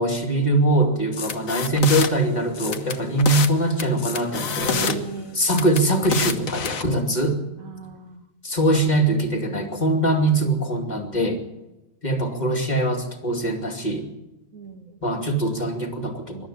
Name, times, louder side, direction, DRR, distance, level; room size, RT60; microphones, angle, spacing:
voice 1, 0.0-5.0 5.4-7.4 8.4-11.4 12.0-14.1 15.0-16.5, right 1 dB, 30° left, 3 dB, 2.7 m, -22 dB
sound 1, 1.1-2.1 2.5-3.5 3.8-5.0 5.4-6.8, left 6 dB, 65° left, 1.6 m, -27 dB
voice 2, 4.7-5.4 7.6-8.2 10.9-11.6 14.5-15.0, right 5 dB, 60° right, 6 dB, 2.4 m, -37 dB
21.0 x 12.5 x 9.9 m, 1.0 s
omnidirectional pair, 1.6 m